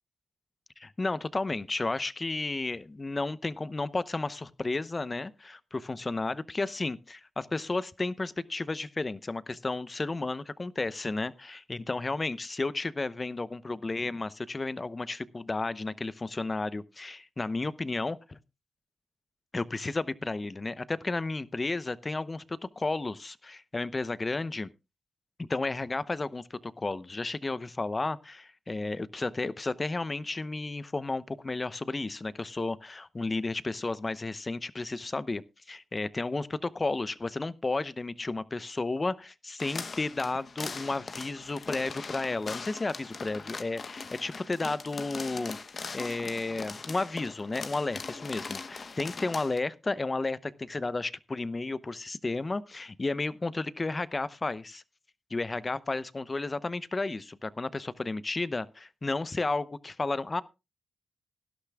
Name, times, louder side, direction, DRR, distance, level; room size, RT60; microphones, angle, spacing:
voice 1, 0.8-18.4 19.5-24.7 25.4-45.6 45.9-54.8 55.3-60.4, left 3 dB, 30° left, 0.8 m, -33 dB
sound 1, 39.6-49.6, left 4 dB, 50° left, 1.1 m, -40 dB
18.0 x 11.5 x 2.3 m
cardioid pair, 65°, 0 cm